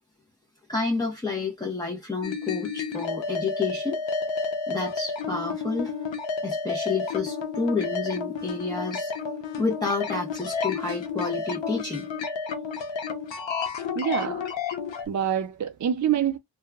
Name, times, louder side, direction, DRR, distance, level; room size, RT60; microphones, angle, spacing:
voice 1, 0.7-4.0 4.7-5.9 6.4-9.1 9.6-12.1, left 4 dB, 10° left, 0.9 m, -29 dB
sound 1, 2.2-15.1, left 5 dB, 80° left, 0.8 m, -31 dB
voice 2, 14.0-14.5 15.1-16.4, right 9 dB, 45° right, 0.4 m, -26 dB
2.7 x 2.3 x 2.3 m
cardioid pair, 60°, 45 cm